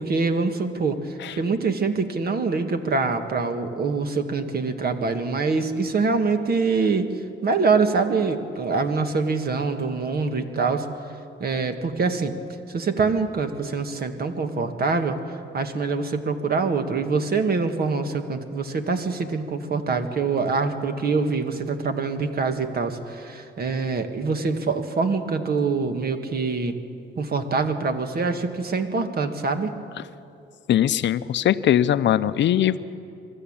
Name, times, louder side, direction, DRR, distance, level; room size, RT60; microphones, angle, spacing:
voice 1, 0.0-7.1 7.4-10.9 11.4-12.3 12.7-26.7 27.2-29.7, right 4 dB, 50° right, 7 dB, 1.7 m, -24 dB
voice 2, 30.7-32.8, left 11 dB, 65° left, 14 dB, 0.7 m, -20 dB
23.5 x 12.5 x 8.8 m, 2.6 s
cardioid pair, 90°, 20 cm